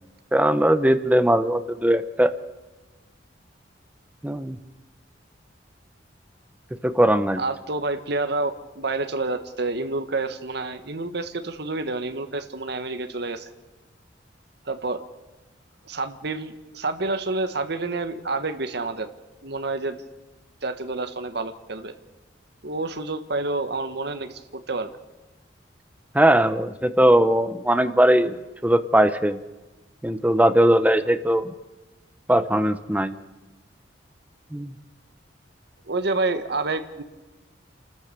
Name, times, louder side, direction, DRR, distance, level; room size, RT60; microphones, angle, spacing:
voice 1, 0.3-2.3 4.2-4.6 6.8-7.4 26.1-28.3 28.6-29.4 30.0-31.5 32.3-33.1 34.5-34.7, right 1 dB, 10° right, 11 dB, 0.9 m, -19 dB
voice 2, 7.4-13.5 14.6-15.0 15.8-19.1 19.4-20.0 20.6-21.9 22.6-24.9 35.9-37.0, right 3 dB, 65° right, 9 dB, 1.5 m, -28 dB
28.5 x 13.5 x 6.9 m, 1.1 s
head